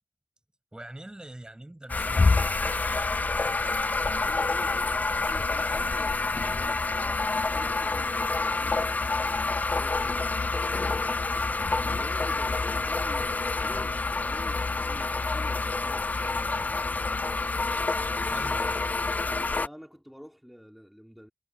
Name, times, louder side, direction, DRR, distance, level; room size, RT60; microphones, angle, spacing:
voice 1, 0.7-3.0 18.3-18.8, right 1 dB, 20° right, 7.1 m, -44 dB
sound 1, 1.9-19.7, left 3 dB, 40° left, 0.4 m, -27 dB
voice 2, 4.2-10.3 11.9-16.4 19.3-21.3, equal, ahead, 3.0 m, -48 dB
wide cardioid pair, 85°, 4 cm